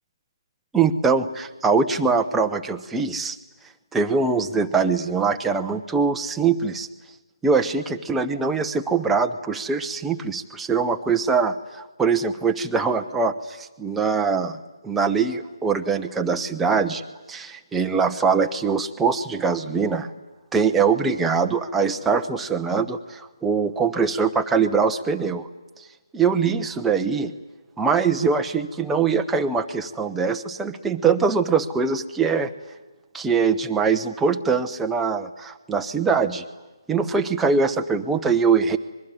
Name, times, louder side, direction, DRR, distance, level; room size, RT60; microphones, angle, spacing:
voice 1, 0.7-3.4 3.9-6.9 7.4-14.6 14.8-17.0 17.3-20.1 20.5-25.5 26.1-27.3 27.8-32.5 33.1-36.4 36.9-38.8, right 5 dB, 5° right, 5 dB, 0.8 m, -22 dB
24.5 x 22.0 x 9.9 m, 1.1 s
figure-of-eight pair, 155°, 3 cm